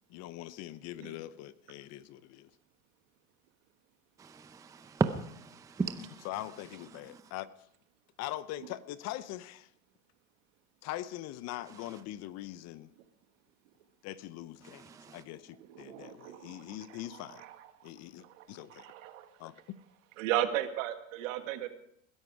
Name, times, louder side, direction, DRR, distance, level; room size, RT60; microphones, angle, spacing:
voice 1, 0.1-2.5 6.2-7.5 8.2-9.7 10.8-12.9 14.0-17.4 17.8-18.9 19.4-19.5, left 14 dB, 40° left, 16 dB, 0.7 m, -42 dB
voice 2, 4.2-7.3 11.7-12.0 14.6-15.2, right 4 dB, 10° right, 10 dB, 0.6 m, -37 dB
voice 3, 15.7-17.7 18.2-19.2 20.2-21.7, right 12 dB, 70° right, 8 dB, 1.9 m, -36 dB
20.5 x 11.0 x 4.8 m, 0.73 s
supercardioid pair, 125°, 41 cm